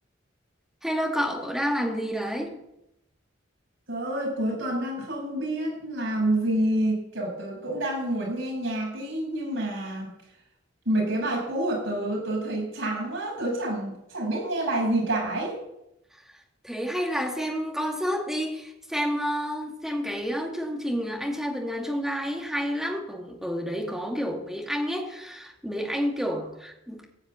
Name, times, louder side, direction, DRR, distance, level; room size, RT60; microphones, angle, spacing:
voice 1, 0.8-2.6 16.1-16.2 16.6-27.0, equal, ahead, 0 dB, 2.5 m, -29 dB
voice 2, 3.9-10.1 10.8-15.6, right 1 dB, 80° right, -2 dB, 6.8 m, -28 dB
16.0 x 7.1 x 8.7 m, 0.84 s
head